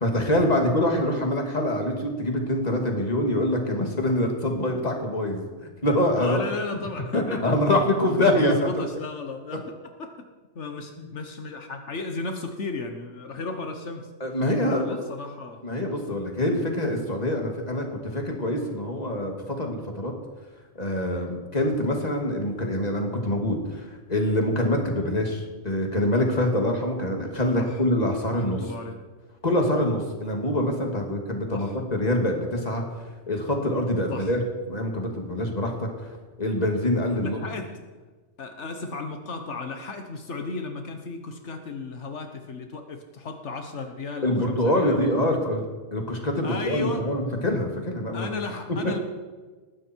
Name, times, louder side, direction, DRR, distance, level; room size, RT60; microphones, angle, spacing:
voice 1, 0.0-5.4 5.8-6.4 7.1-8.5 14.2-15.0 15.6-17.9 18.1-20.1 20.8-28.6 29.4-32.8 33.3-34.4 34.7-35.9 36.4-37.4 44.2-45.6 45.9-48.3 48.8-48.9, left 1 dB, 35° left, 2 dB, 2.6 m, -25 dB
voice 2, 6.2-7.4 8.3-9.6 10.0-10.3 10.5-14.1 14.6-15.6 27.5-27.8 28.3-29.0 31.5-31.8 34.1-34.4 37.2-37.9 38.4-45.0 45.3-45.4 46.4-47.0 48.1-49.0, left 3 dB, 80° left, 5 dB, 1.5 m, -34 dB
19.5 x 15.5 x 4.6 m, 1.4 s
omnidirectional pair, 1.2 m